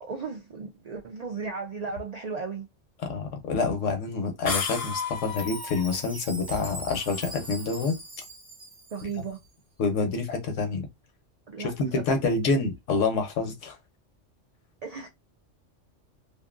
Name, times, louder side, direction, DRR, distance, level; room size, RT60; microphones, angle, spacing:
voice 1, 0.0-2.7 8.9-9.4 11.5-12.2 14.8-15.1, right 5 dB, 80° right, 0.3 m, -35 dB
voice 2, 3.0-7.9 9.0-9.1 9.8-10.9 11.6-13.8, left 4 dB, 80° left, 1.1 m, -27 dB
sound 1, 4.5-5.5, left 5 dB, 60° left, 0.8 m, -32 dB
sound 2, 4.7-7.9, left 6 dB, 30° left, 0.4 m, -39 dB
Chime, 5.2-9.4, right 1 dB, 25° right, 0.6 m, -42 dB
2.6 x 2.5 x 2.4 m
omnidirectional pair, 1.3 m